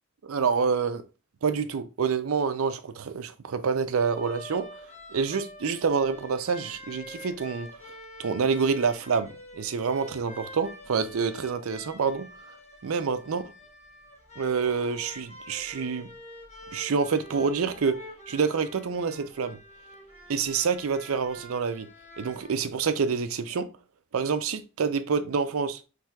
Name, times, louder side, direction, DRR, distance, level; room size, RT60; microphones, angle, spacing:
voice 1, 0.2-1.0 1.4-4.6 5.1-7.7 8.2-9.3 9.5-12.3 12.8-13.4 14.4-16.1 16.7-18.0 18.3-19.6 20.3-21.9 22.2-23.7 24.1-25.8, right 5 dB, 80° right, 0.5 m, -27 dB
sound 1, 3.9-22.5, left 1 dB, 30° left, 1.0 m, -46 dB
6.0 x 3.2 x 2.3 m
head